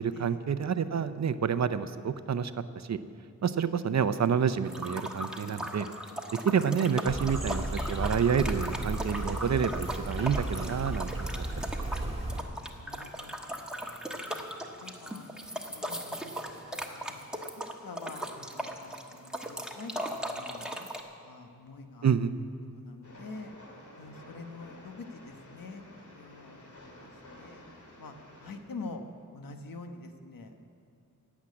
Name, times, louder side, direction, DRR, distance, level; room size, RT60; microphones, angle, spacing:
voice 1, 0.0-3.0 3.4-5.9 6.4-11.7 22.0-22.3, right 7 dB, 55° right, 12 dB, 0.6 m, -29 dB
sound 1, 4.6-21.0, equal, ahead, 1.2 m, -38 dB
sound 2, 7.0-12.4, right 1 dB, 20° right, 1.5 m, -34 dB
voice 2, 12.8-13.6 14.2-14.3 14.8-15.3 15.7-17.3 17.8-20.9 21.2-22.1 22.7-23.5 24.0-27.6 28.0-29.0 29.3-30.7, left 3 dB, 80° left, 5 dB, 1.3 m, -46 dB
Train, 23.0-28.6, left 1 dB, 60° left, 2.6 m, -51 dB
16.0 x 7.3 x 9.6 m, 2.6 s
wide cardioid pair, 125°, 34 cm